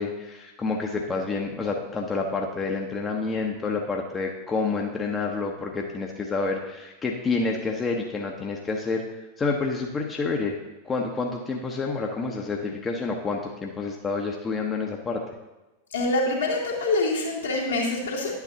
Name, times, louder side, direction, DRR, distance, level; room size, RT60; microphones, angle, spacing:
voice 1, 0.0-9.0 9.4-10.5 10.8-15.2, left 4 dB, 20° left, 1 dB, 0.8 m, -28 dB
voice 2, 15.9-18.4, left 2 dB, 70° left, -3 dB, 2.2 m, -25 dB
10.5 x 8.1 x 2.8 m, 1.1 s
figure-of-eight pair, 90°, 0 cm